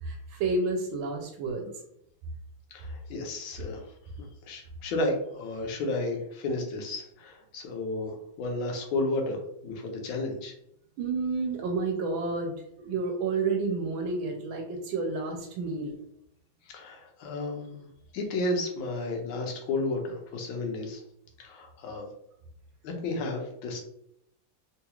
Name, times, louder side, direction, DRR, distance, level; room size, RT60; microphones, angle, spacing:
voice 1, 0.0-1.7 11.0-16.0, right 3 dB, 85° right, 2 dB, 1.4 m, -30 dB
voice 2, 2.7-3.8 4.2-10.5 16.7-17.9 18.1-21.0 21.4-22.1 22.8-23.8, left 2 dB, 80° left, 2 dB, 1.5 m, -32 dB
3.7 x 2.3 x 2.9 m, 0.73 s
omnidirectional pair, 2.1 m